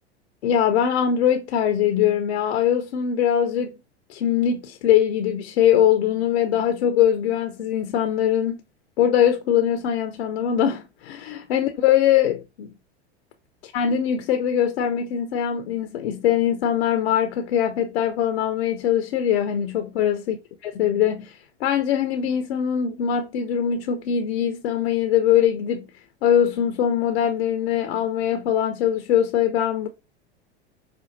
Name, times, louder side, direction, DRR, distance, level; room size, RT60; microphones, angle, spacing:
voice 1, 0.4-3.7 4.1-8.6 9.0-12.7 13.6-20.4 20.6-25.9 26.2-29.9, left 9 dB, 70° left, 0.7 m, -22 dB
5.2 x 2.2 x 2.6 m
hypercardioid pair, 90°, 33 cm